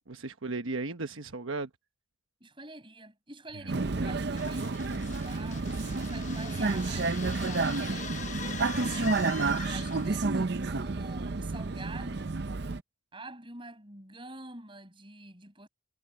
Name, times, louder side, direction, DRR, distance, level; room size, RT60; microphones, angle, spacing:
voice 1, 0.1-1.7 8.4-9.0, right 3 dB, 75° right, 1.2 m, -36 dB
voice 2, 2.4-8.1 9.6-12.4 13.1-15.7, right 2 dB, 25° right, 7.6 m, -47 dB
Vehicle, 3.7-12.8, right 3 dB, 55° right, 0.6 m, -30 dB
sound 1, 4.4-10.3, left 7 dB, 35° left, 0.9 m, -43 dB
head